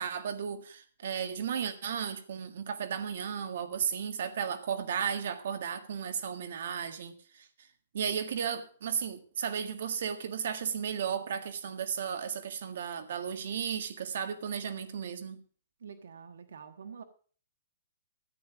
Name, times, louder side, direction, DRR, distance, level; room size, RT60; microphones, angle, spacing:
voice 1, 0.0-7.7 7.9-15.4, right 7 dB, 60° right, 1.7 m, -34 dB
voice 2, 15.8-17.0, right 6 dB, 85° right, 1.3 m, -47 dB
14.0 x 8.9 x 5.9 m
hypercardioid pair, 170°, 0 cm